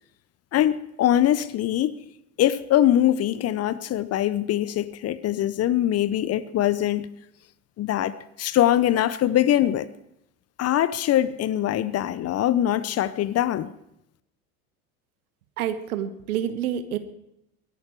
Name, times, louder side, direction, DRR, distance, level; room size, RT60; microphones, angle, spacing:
voice 1, 0.5-2.0 2.4-7.1 7.8-9.9 10.6-13.7, left 12 dB, 35° left, 0.8 m, -22 dB
voice 2, 15.6-17.0, right 10 dB, 70° right, 1.5 m, -28 dB
22.5 x 11.0 x 4.7 m
hypercardioid pair, 80°, 45 cm